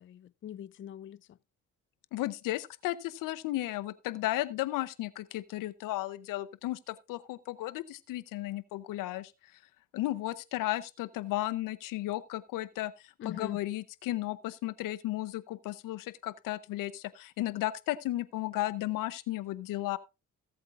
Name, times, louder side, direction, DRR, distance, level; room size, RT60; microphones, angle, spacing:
voice 1, 0.0-1.4 13.2-13.6, left 10 dB, 40° left, 0.4 m, -42 dB
voice 2, 2.1-9.3 9.9-20.0, left 16 dB, 85° left, 0.7 m, -34 dB
17.0 x 8.1 x 2.4 m
supercardioid pair, 65°, 32 cm